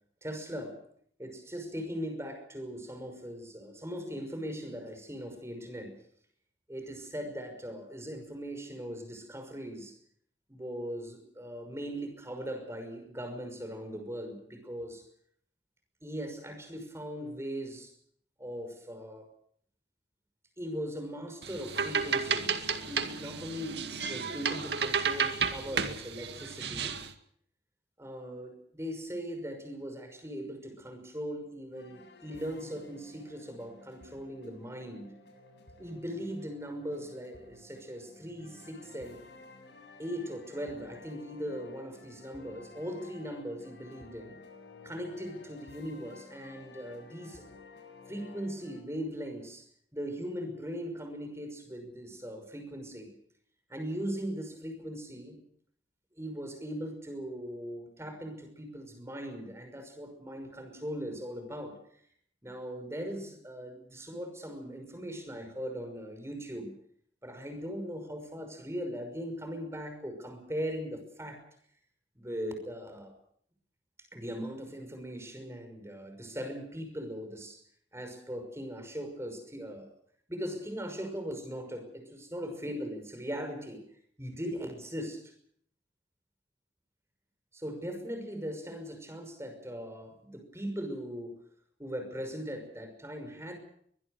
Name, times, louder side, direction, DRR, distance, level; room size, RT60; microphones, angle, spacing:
voice 1, 0.2-0.8 1.2-6.0 6.7-9.9 10.5-15.0 16.0-17.9 18.4-19.3 20.6-22.5 22.8-27.0 28.0-35.1 35.8-39.2 40.0-44.4 44.8-47.5 48.1-49.7 49.9-53.1 53.7-55.4 56.2-61.8 62.4-66.7 67.2-71.4 72.2-73.1 74.1-77.6 77.9-79.9 80.3-83.8 84.2-85.3 87.5-91.4 91.8-93.6, equal, 15° right, 7 dB, 5.8 m, -39 dB
sound 1, 21.4-27.1, right 6 dB, 75° right, 2.1 m, -32 dB
sound 2, 31.7-48.8, left 3 dB, 75° left, 7.1 m, -53 dB
23.5 x 21.0 x 6.6 m, 0.64 s
head